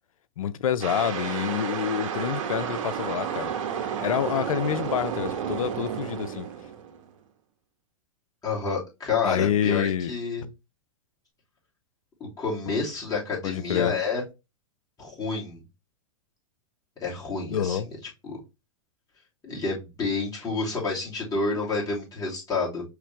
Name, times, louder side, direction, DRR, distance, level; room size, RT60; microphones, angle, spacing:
voice 1, 0.4-3.5 4.0-6.5 9.2-10.1 10.4-10.5 13.4-13.9 17.5-17.9, left 9 dB, 80° left, 0.5 m, -27 dB
sound 1, 0.8-7.1, right 8 dB, 65° right, 1.2 m, -31 dB
voice 2, 8.4-10.5 12.4-14.2 15.0-15.6 17.0-17.8 18.2-18.4 19.4-22.8, left 4 dB, 20° left, 2.9 m, -29 dB
4.9 x 3.2 x 3.2 m
hypercardioid pair, 110°, 17 cm